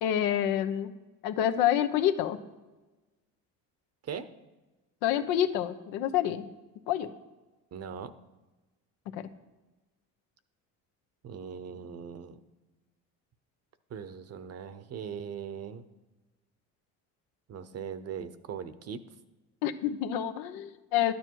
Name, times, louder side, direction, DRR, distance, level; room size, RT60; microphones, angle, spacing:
voice 1, 0.0-0.9 1.2-2.4 5.0-6.5 6.9-7.1 9.1-9.3 19.6-21.1, left 10 dB, 90° left, 9 dB, 1.0 m, -27 dB
voice 2, 7.7-8.1 11.2-12.4 13.9-15.8 17.5-19.0, right 7 dB, 45° right, 13 dB, 0.9 m, -40 dB
12.0 x 9.5 x 4.7 m, 1.1 s
cardioid pair, 110°, 35 cm